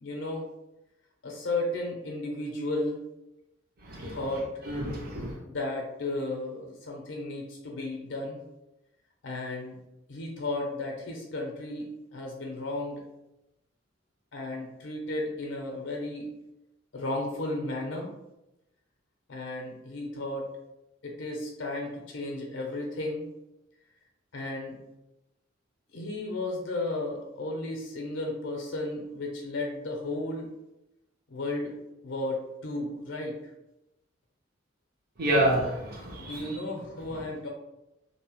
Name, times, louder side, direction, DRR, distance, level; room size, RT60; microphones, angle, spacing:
voice 1, 0.0-0.5 1.2-3.0 4.1-4.5 5.4-8.4 9.2-9.8 10.1-13.0 14.3-16.3 16.9-18.1 19.3-20.5 21.0-23.3 24.3-24.8 25.9-30.5 31.3-31.8 32.0-33.4 36.2-37.5, left 2 dB, 70° left, 0 dB, 0.5 m, -34 dB
voice 2, 3.8-4.2 4.7-5.4 35.2-36.6, right 1 dB, 50° right, -3 dB, 0.7 m, -28 dB
2.6 x 2.0 x 2.8 m, 0.94 s
head